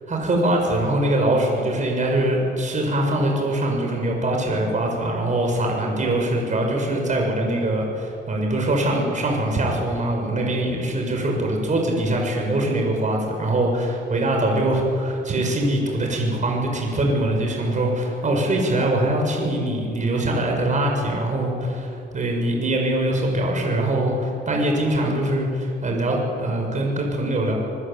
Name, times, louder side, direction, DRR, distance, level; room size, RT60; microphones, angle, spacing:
voice 1, 0.1-27.5, right 1 dB, 40° right, 1 dB, 6.8 m, -23 dB
24.0 x 22.5 x 9.2 m, 2.7 s
cardioid pair, 90°, 20 cm